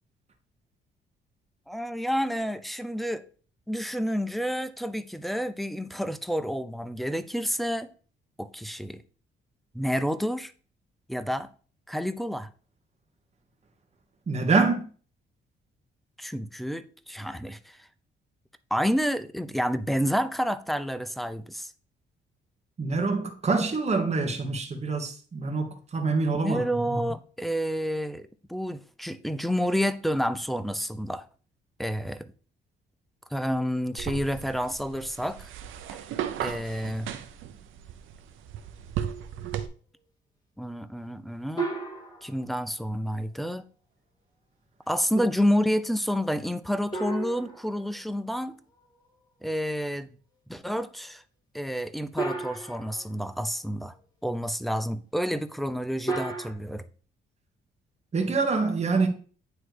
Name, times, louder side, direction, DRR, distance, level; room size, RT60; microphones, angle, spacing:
voice 1, 1.7-3.2 3.7-7.9 8.4-9.0 9.7-10.5 11.1-11.5 11.9-12.5 16.2-17.8 18.7-21.7 26.3-31.2 31.8-32.3 33.3-35.5 36.4-37.1 40.6-41.7 42.2-43.6 44.9-48.6 49.4-50.1 50.5-51.2 51.5-53.9 54.2-56.8, equal, ahead, 0.6 m, -29 dB
voice 2, 14.3-14.8 22.8-26.6 58.1-59.1, right 4 dB, 35° right, 1.5 m, -25 dB
sound 1, 34.0-39.7, right 9 dB, 80° right, 0.7 m, -36 dB
sound 2, 41.6-42.6 46.9-48.5 52.2-53.3 56.1-56.5, right 3 dB, 20° left, 2.1 m, -33 dB
9.5 x 3.3 x 4.7 m
cardioid pair, 90°, 20 cm